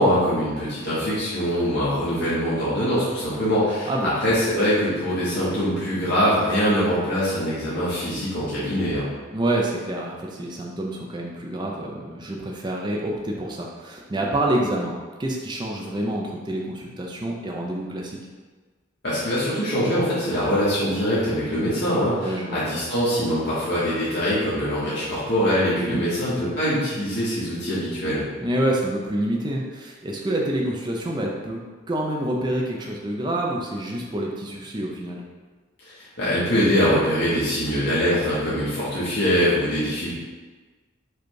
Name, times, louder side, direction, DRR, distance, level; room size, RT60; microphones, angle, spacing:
voice 1, 0.0-3.9 4.2-9.1 19.0-28.2 35.9-40.1, equal, 55° left, -10 dB, 1.2 m, -23 dB
voice 2, 9.3-18.2 22.2-22.6 25.8-26.0 28.4-31.6 31.9-35.2, right 1 dB, 20° right, -1 dB, 0.4 m, -27 dB
4.9 x 2.4 x 4.6 m, 1.4 s
head